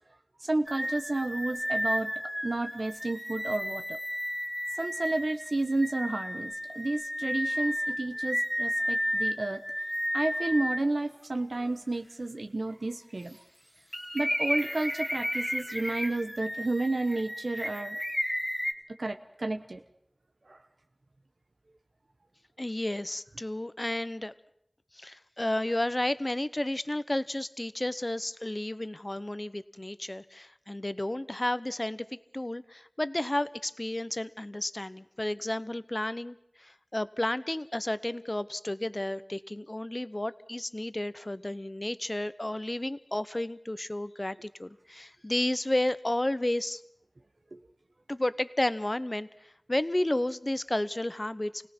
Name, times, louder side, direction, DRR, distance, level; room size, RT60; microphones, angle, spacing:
voice 1, 0.4-2.1 2.4-4.0 4.8-9.6 10.1-13.4 14.1-18.0 19.0-19.8 20.5-20.6 47.5-47.6, right 2 dB, 80° right, 6 dB, 1.0 m, -31 dB
sound 1, 0.7-10.8 11.3-11.4 13.9-18.7, equal, 10° left, 1.7 m, -33 dB
voice 2, 22.6-24.3 25.0-32.1 32.3-46.8 48.1-49.3 49.7-51.7, left 1 dB, 35° left, 14 dB, 0.8 m, -32 dB
29.0 x 18.0 x 6.1 m, 0.75 s
wide cardioid pair, 50°, 0 cm